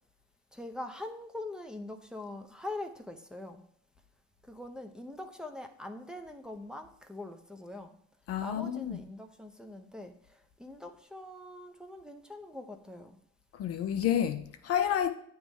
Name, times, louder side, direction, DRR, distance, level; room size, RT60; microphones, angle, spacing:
voice 1, 0.5-3.6 4.4-8.0 8.4-13.2, left 2 dB, ahead, 0.7 m, -43 dB
voice 2, 8.3-9.0 13.5-15.1, left 9 dB, 45° left, 0.6 m, -30 dB
8.8 x 3.1 x 3.6 m
hypercardioid pair, 65°, 32 cm